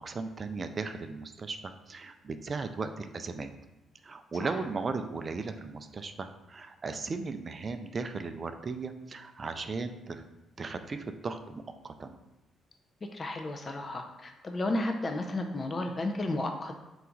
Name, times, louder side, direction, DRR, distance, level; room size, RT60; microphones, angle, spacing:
voice 1, 0.0-3.5 4.0-10.2 10.6-12.2, right 4 dB, 40° right, 8 dB, 0.3 m, -37 dB
voice 2, 13.1-16.8, left 2 dB, 35° left, 4 dB, 0.4 m, -33 dB
3.9 x 2.3 x 4.4 m, 1.0 s
cardioid pair, 90°, 0 cm